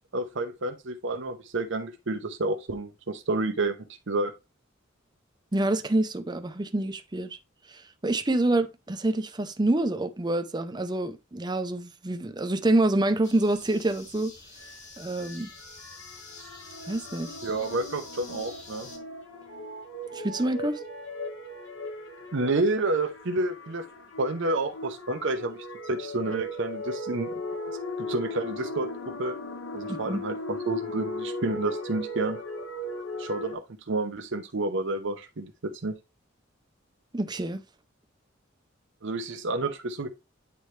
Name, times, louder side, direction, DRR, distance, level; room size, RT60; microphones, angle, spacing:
voice 1, 0.1-3.8 4.1-4.3 17.4-18.9 22.3-23.9 24.2-27.4 28.0-28.9 29.2-29.4 29.7-32.4 33.2-33.6 33.9-35.9 39.0-40.1, right 2 dB, 65° right, 0.8 m, -29 dB
voice 2, 5.5-7.4 8.0-14.3 15.0-15.5 16.9-17.4 20.1-20.8 29.9-30.2 37.1-37.6, right 2 dB, 20° right, 0.7 m, -27 dB
sound 1, 13.2-19.0, left 3 dB, 35° left, 2.2 m, -47 dB
sound 2, 14.6-33.5, left 1 dB, 65° left, 1.5 m, -38 dB
8.5 x 4.4 x 3.2 m
head